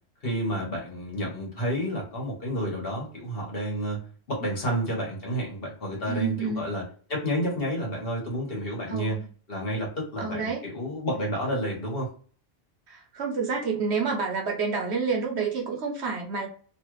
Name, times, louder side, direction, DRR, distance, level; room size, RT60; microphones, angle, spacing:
voice 1, 0.2-4.0 4.3-9.2 9.5-12.1, equal, 50° left, -2 dB, 1.5 m, -30 dB
voice 2, 6.1-6.6 8.9-9.2 10.2-10.6 12.9-16.5, right 5 dB, 65° right, 1 dB, 1.0 m, -29 dB
3.1 x 2.4 x 3.1 m, 0.41 s
omnidirectional pair, 1.3 m